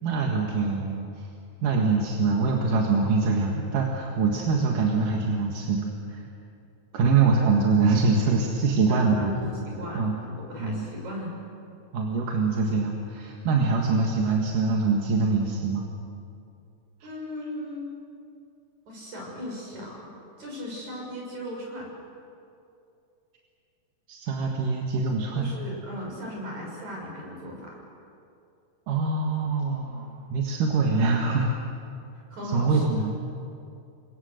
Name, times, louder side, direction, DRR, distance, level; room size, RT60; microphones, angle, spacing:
voice 1, 0.0-1.3 1.6-6.2 6.9-9.6 9.9-10.1 10.6-10.8 11.9-15.9 24.1-25.5 28.9-31.5 32.4-33.3, right 4 dB, 85° right, 0 dB, 3.4 m, -24 dB
voice 2, 8.9-9.4 9.8-11.3 17.0-17.9 18.9-20.1 20.4-21.9 25.3-27.8 32.1-33.0, equal, 65° right, -2 dB, 8.2 m, -37 dB
29.0 x 25.0 x 6.6 m, 2.6 s
omnidirectional pair, 3.6 m